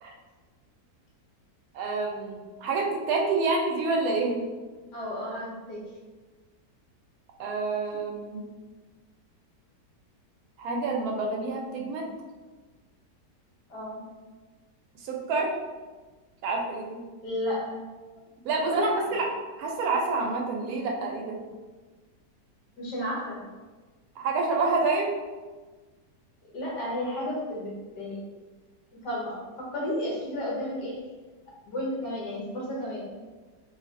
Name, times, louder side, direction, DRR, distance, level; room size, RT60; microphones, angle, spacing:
voice 1, 1.7-4.4 7.4-8.4 10.6-12.1 15.0-15.5 16.4-17.0 18.4-19.3 19.6-21.4 24.2-25.1, right 3 dB, 70° right, 0 dB, 1.0 m, -28 dB
voice 2, 4.9-5.8 13.7-14.0 17.2-17.8 18.7-19.2 22.8-23.5 26.5-28.2 29.0-31.0 31.7-33.1, left 1 dB, 75° left, -4 dB, 1.5 m, -32 dB
3.1 x 2.7 x 2.5 m, 1.3 s
omnidirectional pair, 1.8 m